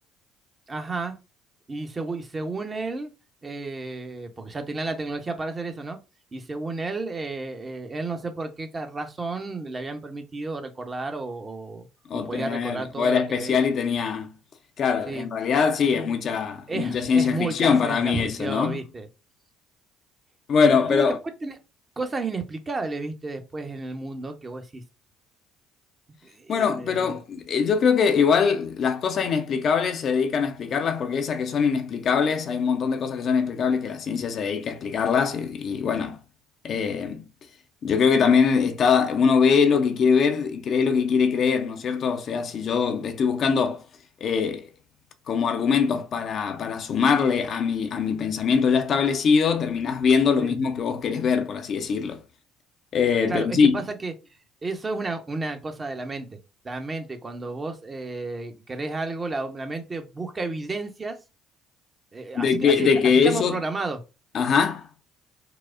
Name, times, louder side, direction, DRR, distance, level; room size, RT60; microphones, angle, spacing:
voice 1, 0.7-1.2 1.7-3.1 3.4-6.0 6.3-11.9 12.1-13.5 15.1-15.3 15.9-16.1 16.7-19.1 20.7-21.1 21.4-21.6 22.0-24.8 26.2-27.2 50.4-50.6 53.3-54.1 54.6-56.3 56.6-61.2 62.1-62.9 63.2-64.0, right 3 dB, 25° right, 0.8 m, -32 dB
voice 2, 12.1-14.3 14.8-18.8 20.5-21.2 26.5-36.2 36.6-37.2 37.8-43.8 44.2-44.7 45.3-52.2 52.9-53.8 62.3-63.6 64.3-64.9, left 6 dB, 45° left, 0.5 m, -22 dB
4.8 x 2.0 x 2.5 m
figure-of-eight pair, 50°, 0 cm